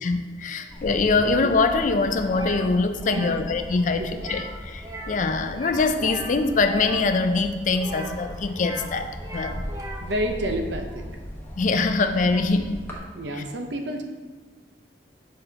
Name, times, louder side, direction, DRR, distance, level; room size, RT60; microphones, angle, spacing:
voice 1, 0.0-9.6 11.6-12.8 13.3-13.4, left 3 dB, 45° left, 8 dB, 0.4 m, -23 dB
sound 1, 0.7-13.0, equal, 10° left, 0.9 m, -38 dB
sound 2, 2.3-2.6 3.0-3.4 4.1-4.5 4.8-5.2 5.5-7.0 7.8-8.9 9.2-10.1, right 1 dB, 20° right, 0.6 m, -38 dB
voice 2, 10.0-11.0 13.1-14.0, right 1 dB, 75° right, 4 dB, 0.7 m, -29 dB
6.9 x 5.5 x 2.8 m, 1.4 s
head